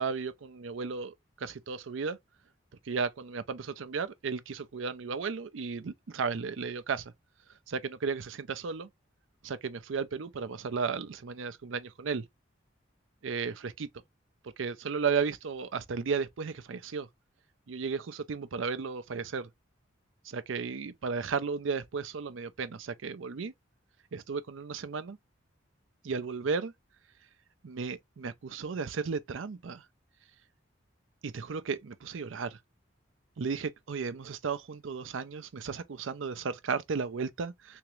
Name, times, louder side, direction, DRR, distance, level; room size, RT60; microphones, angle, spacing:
voice 1, 0.0-2.2 2.9-7.1 7.7-8.9 9.4-12.3 13.2-13.9 14.6-17.1 17.7-19.5 20.2-23.5 24.1-25.2 26.0-26.7 27.6-29.8 31.2-32.6 33.4-37.8, right 5 dB, 75° right, 0.5 m, -34 dB
3.5 x 3.0 x 3.1 m
head